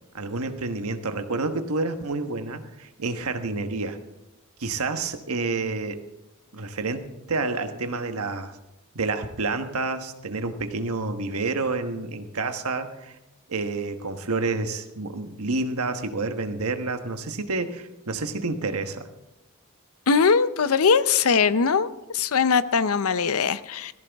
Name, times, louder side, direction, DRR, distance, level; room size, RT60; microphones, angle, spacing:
voice 1, 0.1-4.0 4.6-6.0 6.5-8.6 8.9-13.1 13.5-19.0, right 3 dB, 80° right, 8 dB, 1.3 m, -29 dB
voice 2, 20.1-21.9 22.1-23.9, left 5 dB, 75° left, 15 dB, 0.6 m, -21 dB
18.0 x 15.0 x 3.5 m, 0.94 s
head